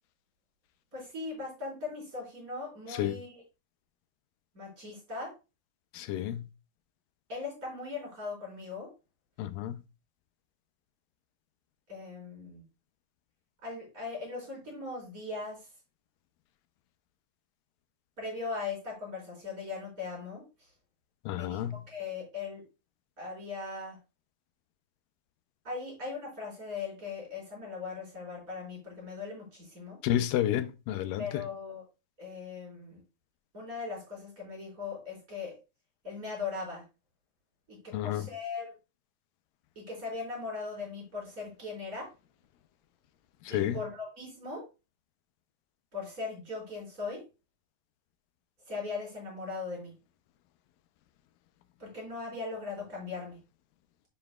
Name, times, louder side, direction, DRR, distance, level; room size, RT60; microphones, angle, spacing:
voice 1, 0.9-3.4 4.5-5.3 7.3-8.9 11.9-12.6 13.6-15.7 18.2-20.4 21.3-22.6 23.2-24.0 25.6-30.0 31.2-31.8 32.2-33.0 33.5-35.6 36.0-36.8 37.7-38.7 39.8-42.1 43.5-44.6 45.9-47.2 48.7-49.9 51.8-53.4, left 4 dB, 25° right, 4.3 m, -39 dB
voice 2, 5.9-6.5 9.4-9.8 21.3-21.8 30.0-31.3 37.9-38.2 43.5-43.8, left 12 dB, 85° left, 2.3 m, -30 dB
7.5 x 6.9 x 2.3 m
omnidirectional pair, 4.0 m